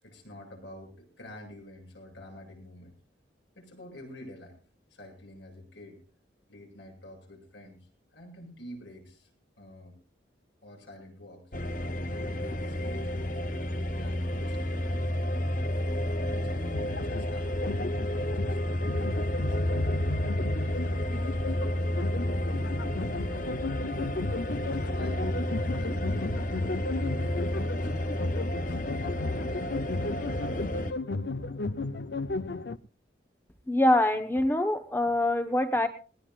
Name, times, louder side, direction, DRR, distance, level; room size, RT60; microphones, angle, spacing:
voice 1, 0.0-2.9 3.6-4.6 4.9-6.0 6.5-9.3 9.6-10.0 10.6-11.5 12.1-13.3 14.0-15.0 16.3-19.7 20.4-21.5 22.4-24.1 24.7-30.8, left 1 dB, 80° left, 2 dB, 7.6 m, -48 dB
sound 1, 11.5-30.9, left 1 dB, 45° left, 1.1 m, -31 dB
sound 2, 16.7-32.8, left 3 dB, 60° left, 0.6 m, -34 dB
voice 2, 33.7-35.9, left 1 dB, 10° left, 7 dB, 1.0 m, -24 dB
20.0 x 20.0 x 2.4 m, 0.36 s
head